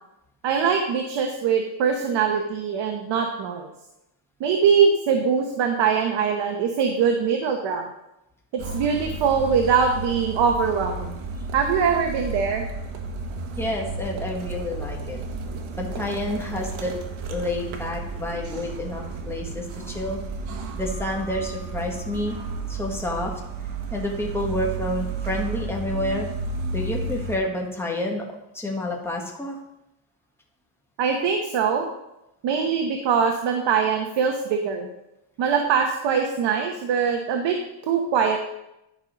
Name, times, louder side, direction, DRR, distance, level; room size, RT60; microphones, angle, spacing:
voice 1, 0.4-3.7 4.4-7.8 8.5-11.2 11.5-12.6 31.0-31.9 32.4-34.9 35.4-37.6 37.9-38.4, right 6 dB, 60° right, 4 dB, 1.1 m, -22 dB
sound 1, 8.6-27.4, right 3 dB, 80° right, 1.4 m, -32 dB
voice 2, 13.6-15.2 15.7-16.9 17.3-20.2 20.7-22.4 22.7-23.3 23.9-26.3 26.7-28.2 28.5-29.6, left 1 dB, 5° left, -1 dB, 1.4 m, -29 dB
10.5 x 5.5 x 5.1 m, 0.89 s
cardioid pair, 160°, 47 cm